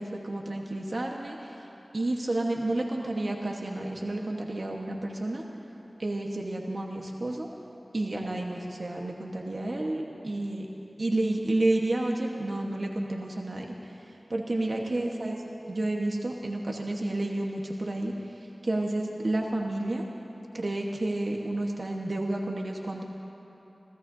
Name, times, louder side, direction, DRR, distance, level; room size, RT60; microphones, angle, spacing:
voice 1, 0.0-1.4 1.9-5.4 6.0-7.5 7.9-10.7 11.0-13.7 14.3-15.4 15.7-18.1 18.6-20.0 20.5-23.0, right 1 dB, 60° right, 0 dB, 1.3 m, -30 dB
26.5 x 17.0 x 2.7 m, 2.9 s
wide cardioid pair, 70°, 0 cm